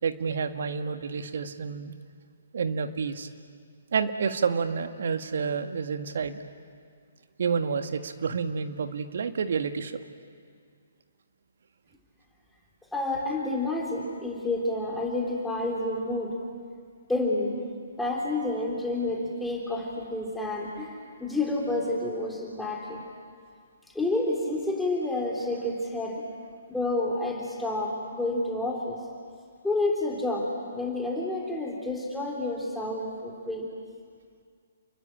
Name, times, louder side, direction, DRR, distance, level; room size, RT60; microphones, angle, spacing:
voice 1, 0.0-1.9 2.5-3.3 3.9-6.4 7.4-10.0, right 5 dB, 55° right, 8 dB, 1.8 m, -29 dB
voice 2, 12.9-16.4 17.1-17.6 18.0-20.9 21.2-23.0 24.0-26.2 26.7-29.0 29.6-33.7, left 2 dB, 5° left, -3 dB, 3.5 m, -29 dB
29.5 x 22.5 x 8.8 m, 2.1 s
figure-of-eight pair, 125°, 0 cm